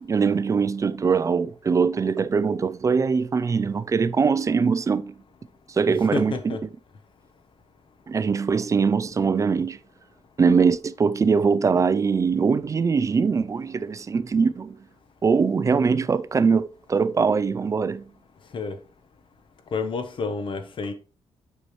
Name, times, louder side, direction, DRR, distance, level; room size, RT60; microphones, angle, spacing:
voice 1, 0.0-5.1 5.7-6.6 8.1-9.8 10.4-14.8 15.2-18.0, right 5 dB, 30° right, 0.3 m, -22 dB
voice 2, 5.9-6.7 18.5-18.8 19.7-20.9, left 4 dB, 50° left, 0.9 m, -29 dB
8.3 x 5.4 x 3.1 m
wide cardioid pair, 140°, 11 cm